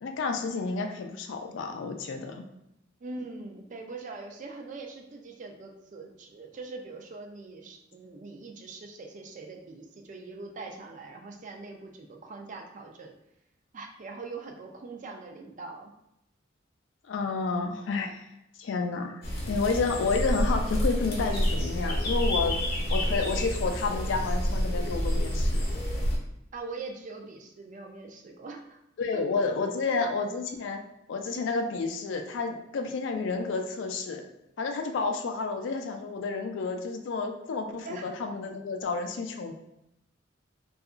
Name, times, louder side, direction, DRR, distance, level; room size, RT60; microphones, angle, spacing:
voice 1, 0.0-2.5 17.1-18.3 18.6-19.2 19.5-22.6 22.9-25.6 29.0-30.8 31.1-34.2 34.6-39.5, left 4 dB, 70° left, 5 dB, 0.4 m, -30 dB
voice 2, 3.0-13.1 13.7-15.9 26.5-28.8 29.1-30.0 37.8-38.1, right 3 dB, 40° right, 2 dB, 0.4 m, -42 dB
sound 1, 19.2-26.2, equal, 55° left, 0.7 m, -28 dB
2.7 x 2.3 x 2.4 m, 0.85 s
head